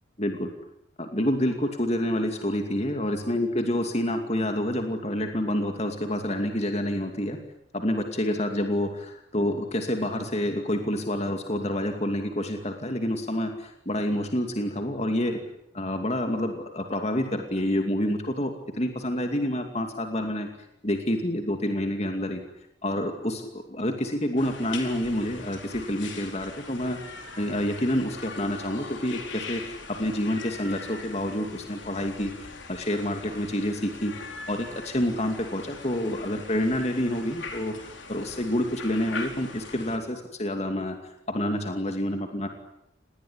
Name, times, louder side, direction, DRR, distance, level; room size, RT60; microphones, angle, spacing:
voice 1, 0.2-0.5 1.0-7.4 7.7-15.4 15.7-20.5 20.8-22.4 22.8-34.1 34.5-41.0 41.3-42.5, left 1 dB, 30° left, 5 dB, 2.5 m, -28 dB
sound 1, 24.4-40.0, left 4 dB, 65° left, 4.5 m, -41 dB
28.0 x 20.0 x 9.9 m, 0.79 s
head